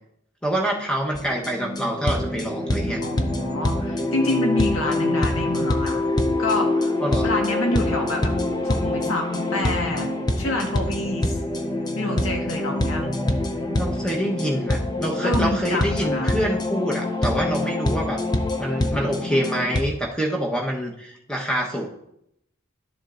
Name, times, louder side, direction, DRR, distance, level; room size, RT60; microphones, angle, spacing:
voice 1, 0.4-3.0 7.0-7.3 13.8-18.2 18.6-21.9, equal, 5° left, -1 dB, 1.0 m, -26 dB
sound 1, 1.2-19.8, left 2 dB, 20° left, 0.6 m, -25 dB
voice 2, 3.0-6.0 6.4-6.9 7.2-8.3 8.6-10.1 10.4-11.4 11.9-13.1 15.2-16.3, left 1 dB, 80° left, 1 dB, 1.6 m, -27 dB
12.0 x 7.3 x 2.6 m, 0.78 s
head